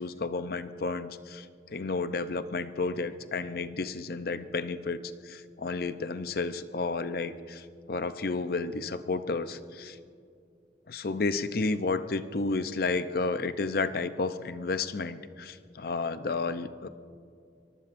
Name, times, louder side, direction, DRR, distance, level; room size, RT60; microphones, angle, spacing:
voice 1, 0.0-1.4 1.7-5.0 5.2-10.0 10.9-16.9, left 3 dB, 55° left, 11 dB, 0.6 m, -31 dB
24.5 x 23.0 x 2.6 m, 2.3 s
head